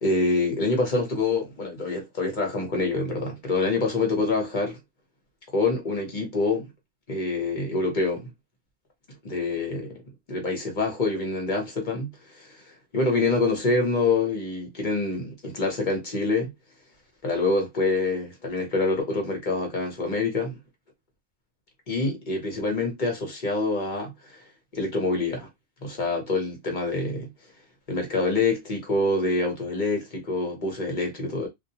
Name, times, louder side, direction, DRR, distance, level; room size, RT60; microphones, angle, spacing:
voice 1, 0.0-4.8 5.5-6.7 7.1-8.3 9.2-9.9 10.3-12.5 12.9-16.5 17.2-20.6 21.9-24.4 24.7-25.5 25.8-27.3 27.9-31.5, left 3 dB, 45° left, 0.9 m, -26 dB
2.3 x 2.1 x 2.7 m
omnidirectional pair, 1.1 m